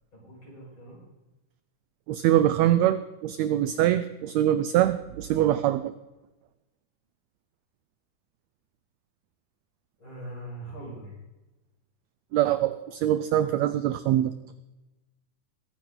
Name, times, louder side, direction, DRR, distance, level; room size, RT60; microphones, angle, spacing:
voice 1, 0.1-1.0 3.4-3.6 10.0-11.1, right 1 dB, 35° left, -5 dB, 6.6 m, -42 dB
voice 2, 2.1-5.9 12.3-14.3, right 12 dB, 85° right, 12 dB, 1.5 m, -23 dB
21.5 x 9.9 x 3.9 m, 1.1 s
omnidirectional pair, 3.7 m